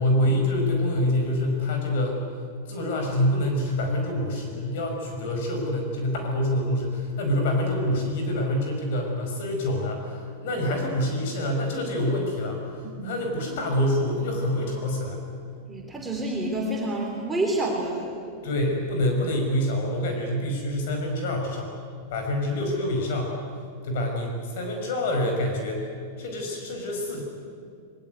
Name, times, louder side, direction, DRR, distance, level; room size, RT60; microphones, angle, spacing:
voice 1, 0.0-2.2 2.7-15.2 18.4-21.7 22.1-23.3 23.8-25.9 26.2-27.2, left 1 dB, 60° left, 2 dB, 5.6 m, -26 dB
voice 2, 15.7-18.4, right 1 dB, 5° right, -2 dB, 3.1 m, -28 dB
23.0 x 22.0 x 9.4 m, 2.3 s
supercardioid pair, 165°, 0 cm